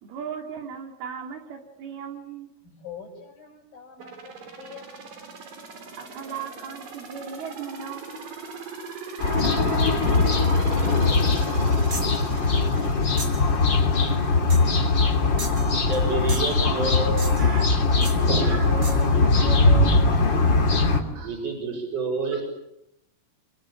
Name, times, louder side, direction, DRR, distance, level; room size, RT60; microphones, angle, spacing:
voice 1, 0.0-2.5 6.0-8.1 10.6-11.2 17.4-20.2, right 6 dB, 85° right, 3 dB, 4.7 m, -37 dB
voice 2, 2.6-5.3 5.9-6.0, left 7 dB, 65° left, -6 dB, 7.0 m, -45 dB
sound 1, 4.0-14.7 15.1-15.2, right 5 dB, 60° right, 5.1 m, -40 dB
sound 2, 9.2-21.0, left 3 dB, 35° left, 3.0 m, -21 dB
sound 3, 11.9-12.2 13.2-13.5 14.5-14.8 15.4-16.0 16.3-16.6 17.2-17.6 18.0-18.2 18.8-19.1, right 2 dB, 25° right, 3.0 m, -36 dB
voice 3, 15.9-17.2 18.3-18.7 21.2-22.4, right 3 dB, 40° right, -2 dB, 6.9 m, -28 dB
27.5 x 24.0 x 8.6 m, 0.84 s
omnidirectional pair, 4.3 m